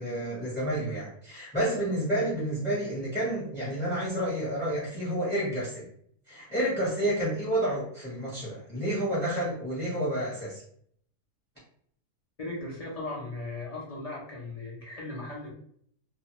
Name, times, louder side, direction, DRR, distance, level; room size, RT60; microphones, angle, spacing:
voice 1, 0.0-5.9 6.3-10.6, right 1 dB, 10° left, -8 dB, 0.8 m, -30 dB
voice 2, 12.4-15.5, left 2 dB, 50° left, -5 dB, 0.4 m, -37 dB
2.5 x 2.2 x 2.9 m, 0.64 s
omnidirectional pair, 1.6 m